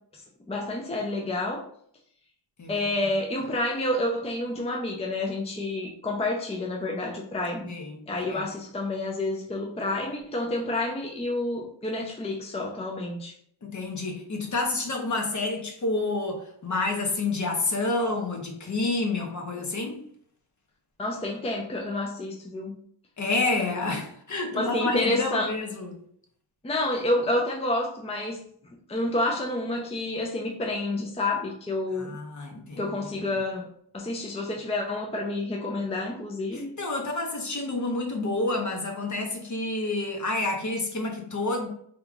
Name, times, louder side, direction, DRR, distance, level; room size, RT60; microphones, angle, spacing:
voice 1, 0.1-1.7 2.7-7.7 8.1-13.3 21.0-22.8 24.5-25.5 26.6-28.4 28.9-32.2 32.8-33.7 33.9-36.7, left 2 dB, 15° left, 0 dB, 0.6 m, -29 dB
voice 2, 7.7-8.5 13.6-20.0 23.2-26.0 31.9-33.3 36.5-41.7, left 2 dB, 40° left, 2 dB, 1.0 m, -29 dB
3.8 x 2.8 x 2.4 m, 0.63 s
cardioid pair, 65°, 45 cm